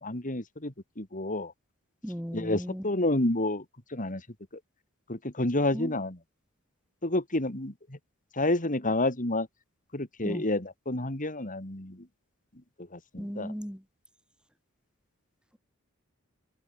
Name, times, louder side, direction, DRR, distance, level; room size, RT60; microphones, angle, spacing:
voice 1, 0.0-1.5 2.3-3.6 3.9-4.2 5.1-6.2 7.0-8.0 8.4-9.5 9.9-12.1 12.9-13.5, left 2 dB, 40° left, 3.6 m, -29 dB
voice 2, 2.0-2.8 5.7-5.9 10.2-10.4 13.2-13.8, equal, 5° right, 6.3 m, -36 dB
head